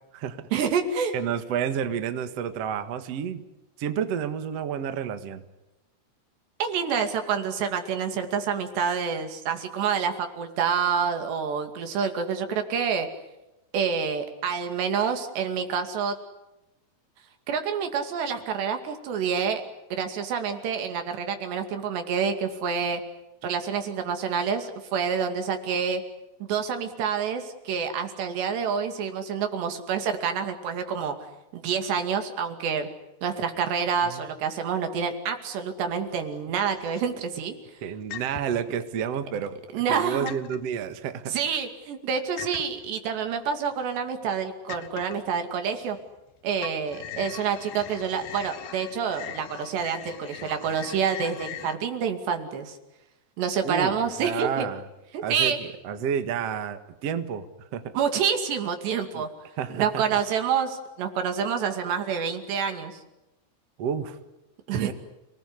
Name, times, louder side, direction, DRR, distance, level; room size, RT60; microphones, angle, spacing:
voice 1, 0.5-1.2 6.6-13.1 13.7-16.2 17.5-19.6 19.9-23.0 23.4-26.0 26.4-31.2 31.5-32.9 33.2-37.5 39.7-40.3 41.3-46.0 46.4-52.8 53.4-54.7 55.1-55.6 57.9-59.3 59.7-63.0 64.7-64.9, right 6 dB, 80° right, 7 dB, 4.7 m, -27 dB
voice 2, 1.1-3.4 3.8-5.4 34.0-34.2 37.8-41.4 53.6-54.8 55.2-57.5 57.7-57.9 59.1-59.2 59.6-60.2 63.8-64.2 64.8-64.9, right 8 dB, 55° right, 9 dB, 2.0 m, -30 dB
sound 1, 35.9-36.4 36.7-37.4 38.1-38.7 39.3-40.0 40.3-40.7 42.4-42.9 43.5-43.6 44.0-44.1 44.7-45.3 45.7-46.3 46.6-51.8, left 12 dB, 70° left, 3.2 m, -41 dB
29.5 x 19.5 x 9.8 m, 0.96 s
omnidirectional pair, 4.8 m